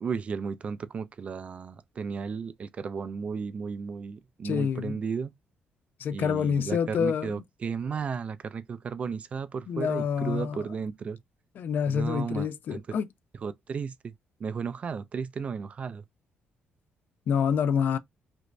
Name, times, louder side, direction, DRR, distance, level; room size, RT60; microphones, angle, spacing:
voice 1, 0.0-5.3 6.1-11.2 11.9-12.8 13.4-14.1 14.4-16.0, right 6 dB, 35° right, 0.3 m, -34 dB
voice 2, 4.4-5.0 6.0-7.4 9.7-10.6 11.6-13.1 17.3-18.0, left 7 dB, 55° left, 0.3 m, -27 dB
3.1 x 2.5 x 3.1 m
cardioid pair, 155°, 4 cm